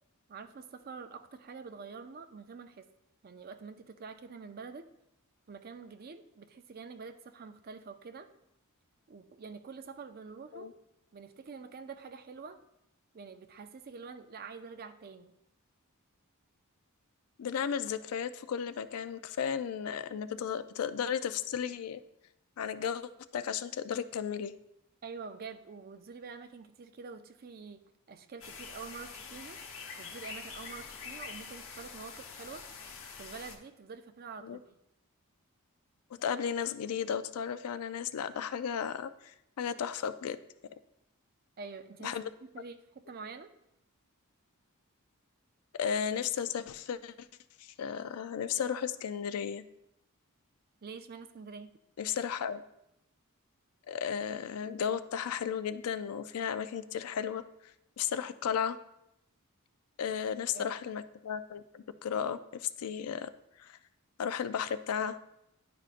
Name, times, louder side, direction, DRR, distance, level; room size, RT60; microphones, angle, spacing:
voice 1, 0.3-2.9 3.2-4.8 5.5-8.3 9.1-10.7 11.1-12.6 13.1-15.3 25.0-27.8 28.1-29.6 30.0-32.6 33.2-34.6 41.6-42.2 42.4-43.5 50.8-51.7 60.1-60.7, right 5 dB, 40° right, 9 dB, 0.4 m, -46 dB
voice 2, 17.4-22.0 22.6-24.5 34.4-34.6 36.2-40.4 42.0-42.3 45.7-47.3 47.6-49.6 52.0-52.6 53.9-57.4 58.0-58.8 60.0-63.3 63.6-63.8 64.2-65.2, left 7 dB, 75° left, 12 dB, 0.4 m, -34 dB
sound 1, 28.4-33.6, left 5 dB, 60° left, 0.9 m, -45 dB
10.5 x 5.0 x 2.5 m, 0.84 s
head